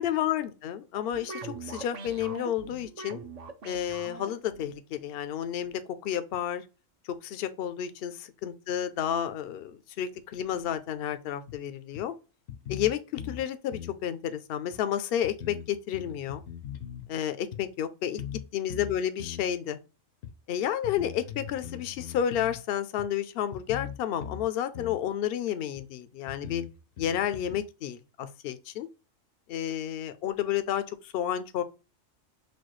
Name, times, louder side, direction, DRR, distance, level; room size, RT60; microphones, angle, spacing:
voice 1, 0.0-3.2 3.6-6.6 7.2-12.1 12.7-16.4 17.1-18.2 18.5-19.8 20.5-26.6 27.0-28.9 29.5-31.6, left 10 dB, 65° left, 0.6 m, -31 dB
sound 1, 1.1-4.7, right 4 dB, 45° right, 0.5 m, -42 dB
sound 2, 11.5-11.6 11.9-12.0 12.5-13.4 13.7-14.0 14.7-14.8 15.2-17.1 17.5-17.6 18.2-18.4 18.7-19.5 20.2-20.3 20.8-22.6 23.0-23.1 23.5-24.5 24.7-25.0 25.7-25.8 26.3-27.6, left 8 dB, 80° left, 1.1 m, -40 dB
6.1 x 2.3 x 3.1 m
omnidirectional pair, 1.4 m